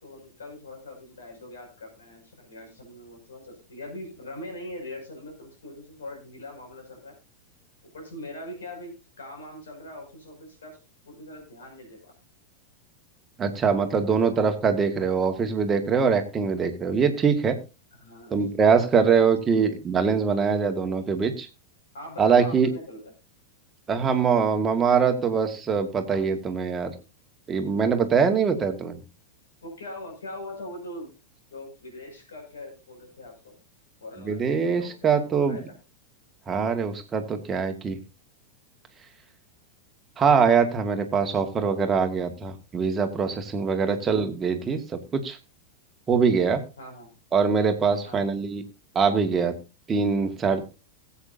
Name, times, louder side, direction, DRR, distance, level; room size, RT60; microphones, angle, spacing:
voice 1, 0.0-7.1 7.8-12.1 18.0-18.4 21.9-23.1 29.6-31.1 31.5-33.5 34.0-35.6 43.9-44.0 46.8-47.1 48.0-48.2, left 1 dB, 65° left, 2 dB, 6.2 m, -41 dB
voice 2, 13.4-17.6 18.3-21.5 22.2-22.7 23.9-26.9 27.5-29.0 34.2-35.6 36.5-38.0 40.2-45.4 46.1-46.6 47.3-48.6 49.0-49.5 49.9-50.6, right 5 dB, 20° right, 5 dB, 1.9 m, -23 dB
20.0 x 8.4 x 2.7 m, 0.30 s
figure-of-eight pair, 90°, 0 cm